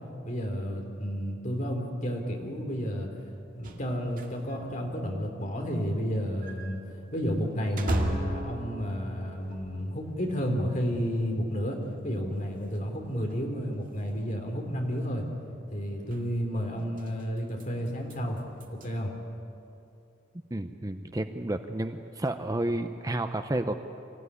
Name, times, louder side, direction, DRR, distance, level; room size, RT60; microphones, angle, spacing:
voice 1, 0.2-3.1 3.5-6.8 7.1-15.2 15.7-18.4 18.7-19.1, equal, 40° left, 2 dB, 3.3 m, -31 dB
sound 1, 3.6-10.1 10.4-10.5 11.0-11.1 11.8-11.9 12.2-12.3 12.5-12.8 13.0-14.2 14.9-15.0 16.0-16.3 16.8-18.9, right 1 dB, 45° right, 2.0 m, -38 dB
sound 2, 8.0-11.8, equal, 90° right, 3.9 m, -45 dB
voice 2, 20.5-23.7, right 1 dB, 20° right, 8 dB, 0.7 m, -31 dB
25.0 x 15.5 x 9.8 m, 2.7 s
head